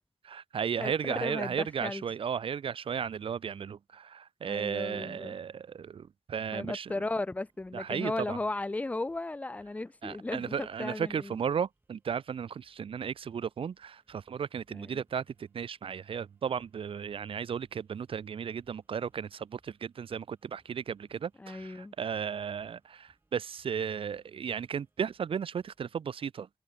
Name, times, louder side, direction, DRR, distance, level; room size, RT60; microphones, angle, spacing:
voice 1, 0.3-6.9 7.7-8.4 10.0-26.5, right 7 dB, 65° right, 0.5 m, -35 dB
voice 2, 0.8-2.0 4.5-5.3 6.5-11.4 14.7-15.0 21.4-21.9, left 2 dB, 15° left, 0.3 m, -36 dB
sound 1, 7.4-26.0, right 2 dB, 20° right, 5.7 m, -73 dB
wide cardioid pair, 100°, 10 cm